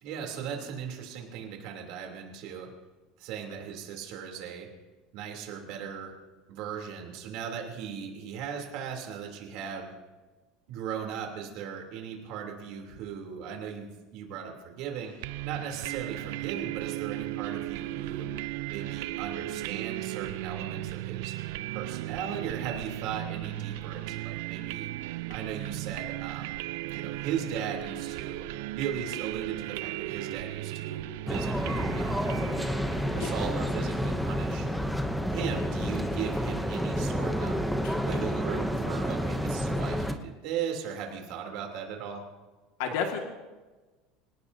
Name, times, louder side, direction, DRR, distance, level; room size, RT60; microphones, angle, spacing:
voice 1, 0.0-2.8 3.2-4.7 5.1-6.1 6.5-10.0 10.7-18.3 18.7-21.3 21.7-24.9 25.3-26.6 26.9-32.2 33.1-34.7 35.3-37.6 38.0-42.3, right 7 dB, 55° right, 1 dB, 3.2 m, -37 dB
sound 1, 15.2-33.9, right 17 dB, 85° right, 0.5 m, -36 dB
sound 2, 31.3-40.1, equal, ahead, 0.7 m, -29 dB
voice 2, 42.8-43.2, left 6 dB, 80° left, 2 dB, 2.0 m, -31 dB
26.0 x 17.5 x 2.8 m, 1.2 s
cardioid pair, 175°, 0 cm